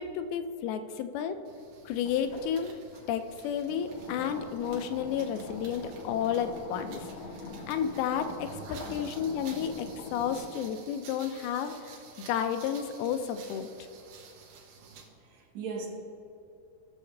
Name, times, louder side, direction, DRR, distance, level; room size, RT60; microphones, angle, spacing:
voice 1, 0.0-1.4 1.9-2.7 3.1-7.1 7.7-11.9 12.3-13.7, left 8 dB, 80° left, 8 dB, 2.5 m, -31 dB
sound 1, 1.5-15.2, right 6 dB, 85° right, 3.2 m, -52 dB
sound 2, 2.1-10.4, left 3 dB, 55° left, 2.5 m, -44 dB
voice 2, 8.4-9.3 15.2-15.9, right 4 dB, 60° right, -1 dB, 2.0 m, -41 dB
17.0 x 6.7 x 3.3 m, 2.6 s
omnidirectional pair, 4.5 m